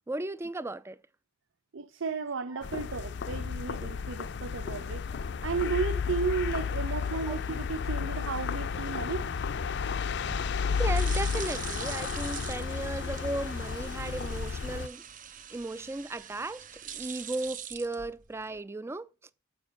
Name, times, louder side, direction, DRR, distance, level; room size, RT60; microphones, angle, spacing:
voice 1, 0.1-1.0 2.5-2.6 7.3-7.4 10.8-15.0 15.5-19.1, right 2 dB, 15° right, 0.3 m, -36 dB
voice 2, 1.7-5.0 5.4-9.3, right 5 dB, 85° right, 0.7 m, -33 dB
sound 1, 2.6-14.9, left 5 dB, 60° left, 0.5 m, -32 dB
sound 2, 10.1-18.6, right 9 dB, 45° right, 0.7 m, -43 dB
7.1 x 6.2 x 5.9 m
head